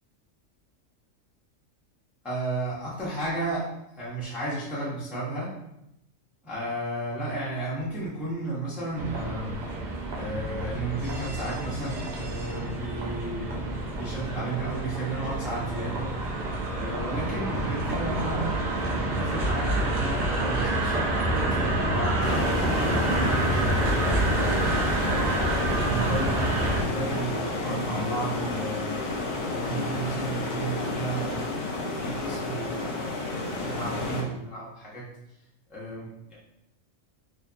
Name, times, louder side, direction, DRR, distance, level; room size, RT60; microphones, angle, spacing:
voice 1, 2.2-3.6 3.9-5.5 6.4-9.6 10.1-16.4 16.7-22.2 22.7-24.8 25.0-29.2 29.4-35.1 35.7-36.3, right 2 dB, ahead, -8 dB, 0.4 m, -33 dB
sound 1, 8.9-26.8, right 1 dB, 80° right, 0.4 m, -28 dB
sound 2, 22.2-34.2, left 2 dB, 70° left, 0.9 m, -31 dB
2.6 x 2.4 x 2.2 m, 0.85 s
omnidirectional pair, 1.3 m